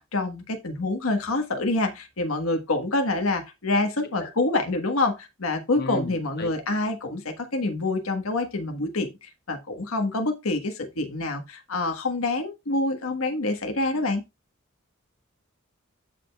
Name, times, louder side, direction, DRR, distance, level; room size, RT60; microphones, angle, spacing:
voice 1, 0.0-14.2, left 2 dB, 70° left, 1.4 m, -27 dB
voice 2, 5.8-6.5, left 2 dB, 50° left, 1.3 m, -33 dB
13.5 x 5.0 x 2.3 m
head